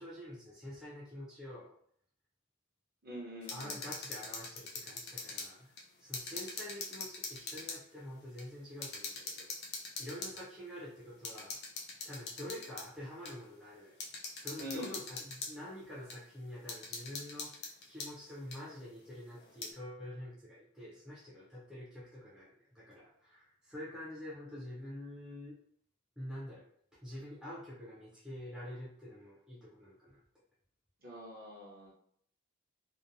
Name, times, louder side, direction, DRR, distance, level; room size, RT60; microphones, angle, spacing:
voice 1, 0.0-1.8 3.5-5.7 6.0-11.6 12.0-14.0 14.4-25.6 26.2-26.6 26.9-30.2, left 1 dB, 5° right, -8 dB, 0.6 m, -47 dB
voice 2, 3.0-3.8 14.6-15.0 31.0-31.9, equal, 45° right, -3 dB, 0.8 m, -44 dB
sound 1, 3.4-5.5 5.8-7.8 8.4-8.5 8.8-10.4 11.2-12.9 13.2-13.3 14.0-15.5 16.1-16.2 16.7-18.1 18.5-18.6 19.4-19.7, left 4 dB, 50° left, 0.5 m, -43 dB
2.8 x 2.1 x 2.5 m, 0.66 s
head